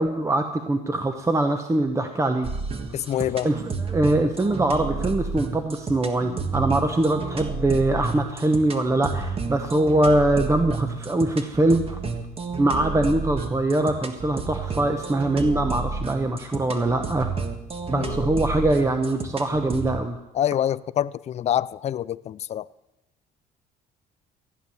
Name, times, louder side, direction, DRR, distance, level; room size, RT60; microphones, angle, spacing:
voice 1, 0.0-2.5 3.1-12.0 12.6-17.3 17.9-20.2, right 2 dB, 15° right, 1.0 m, -23 dB
sound 1, 2.4-20.0, right 4 dB, 35° right, 1.6 m, -31 dB
voice 2, 2.9-3.5 18.0-18.2 20.3-22.7, left 11 dB, 40° left, 0.4 m, -26 dB
14.5 x 9.6 x 7.1 m
cardioid pair, 110°, 17 cm